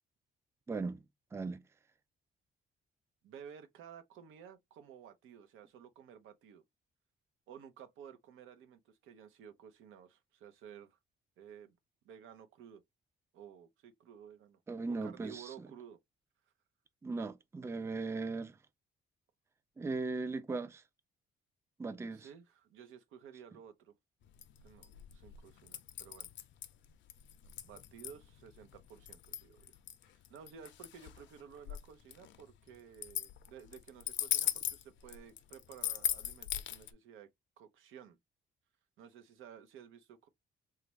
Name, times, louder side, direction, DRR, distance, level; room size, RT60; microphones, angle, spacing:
voice 1, 0.7-1.0 1.3-1.6 14.7-15.7 17.0-18.6 19.8-20.8 21.8-22.3, right 3 dB, 15° right, 0.4 m, -38 dB
voice 2, 3.2-6.6 7.5-11.0 11.4-11.8 12.0-12.8 13.3-14.6 15.0-16.0 22.1-23.9 24.6-26.3 27.6-29.7 30.3-37.3 37.6-38.2 39.0-40.3, right 8 dB, 90° right, 0.7 m, -54 dB
sound 1, 24.3-36.9, left 11 dB, 70° left, 0.5 m, -39 dB
3.2 x 2.4 x 3.1 m
cardioid pair, 90°, 20 cm